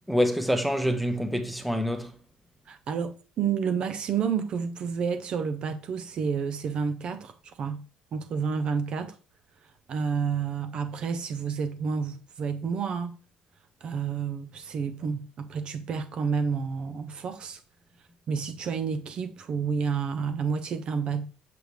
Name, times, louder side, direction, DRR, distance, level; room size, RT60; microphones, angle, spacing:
voice 1, 0.1-2.1, equal, ahead, 0.7 m, -26 dB
voice 2, 2.7-7.8 8.1-9.2 9.9-13.1 13.8-17.6 18.3-21.3, right 6 dB, 40° right, 0.4 m, -30 dB
6.7 x 6.3 x 3.2 m
cardioid pair, 170°, 3 cm